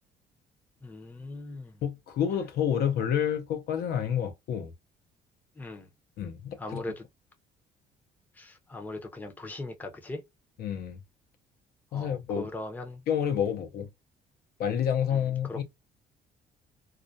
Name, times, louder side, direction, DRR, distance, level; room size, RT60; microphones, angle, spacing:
voice 1, 0.8-1.7 5.6-5.9 6.6-7.0 8.4-10.2 11.9-13.0 15.1-15.6, left 2 dB, 10° left, 0.6 m, -40 dB
voice 2, 1.8-4.7 6.2-6.8 10.6-11.0 11.9-12.5 13.1-13.9 14.6-15.6, left 8 dB, 65° left, 0.6 m, -29 dB
2.4 x 2.1 x 2.6 m
cardioid pair, 110°, 17 cm